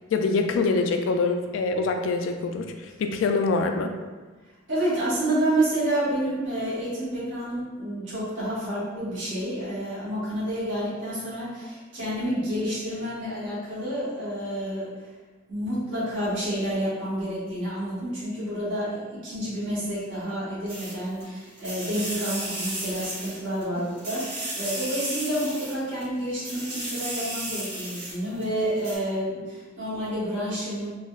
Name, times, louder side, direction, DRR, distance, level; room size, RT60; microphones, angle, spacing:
voice 1, 0.1-3.9, left 3 dB, 75° left, 6 dB, 0.3 m, -25 dB
voice 2, 4.7-15.1 15.5-30.9, right 1 dB, 70° right, -12 dB, 1.4 m, -29 dB
sound 1, 20.7-21.2 21.6-23.6 24.0-26.0 26.4-28.4 28.8-29.0, right 1 dB, 50° right, 1.5 m, -34 dB
3.6 x 2.0 x 2.4 m, 1.3 s
head